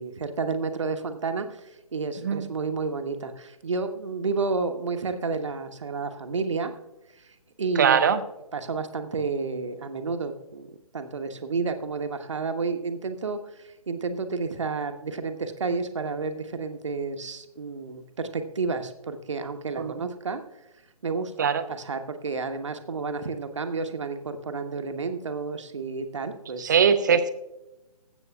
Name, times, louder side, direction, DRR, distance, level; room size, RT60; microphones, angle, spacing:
voice 1, 0.0-6.7 7.2-8.1 8.5-10.7 10.9-20.4 21.0-26.7, right 4 dB, 55° right, 7 dB, 1.1 m, -31 dB
voice 2, 7.8-8.2 19.8-19.9 21.4-21.6 26.6-27.3, right 7 dB, 30° right, 11 dB, 0.6 m, -21 dB
20.5 x 8.1 x 2.3 m, 0.97 s
figure-of-eight pair, 140°, 19 cm